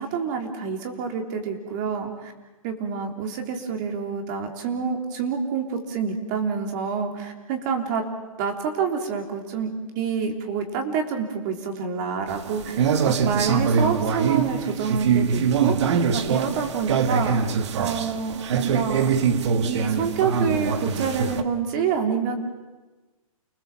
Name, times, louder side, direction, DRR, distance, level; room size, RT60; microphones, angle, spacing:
voice 1, 0.0-2.3 2.6-8.0 8.4-9.7 10.0-15.8 16.1-17.4 17.8-19.2 19.6-22.4, right 6 dB, 30° right, 4 dB, 3.6 m, -27 dB
sound 1, 12.3-21.4, right 6 dB, 50° right, 1.6 m, -23 dB
30.0 x 20.0 x 7.4 m, 1.2 s
hypercardioid pair, 155°, 18 cm